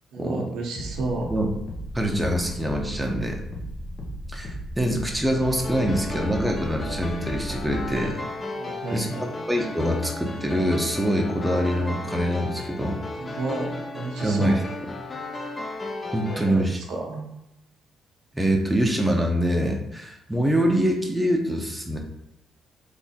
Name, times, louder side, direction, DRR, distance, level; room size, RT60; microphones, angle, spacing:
voice 1, 0.1-1.3 8.6-9.2 13.2-14.6 16.3-17.3, right 3 dB, 80° right, 0 dB, 0.9 m, -32 dB
sound 1, 0.8-8.1, equal, 50° left, 0.9 m, -36 dB
voice 2, 1.9-3.4 4.3-8.2 8.9-13.0 14.2-14.6 16.1-16.8 18.3-22.0, equal, 10° right, 1 dB, 0.7 m, -24 dB
sound 2, 5.4-16.5, left 2 dB, 25° left, 0.6 m, -35 dB
3.7 x 2.6 x 4.2 m, 0.87 s
cardioid pair, 90°, 0 cm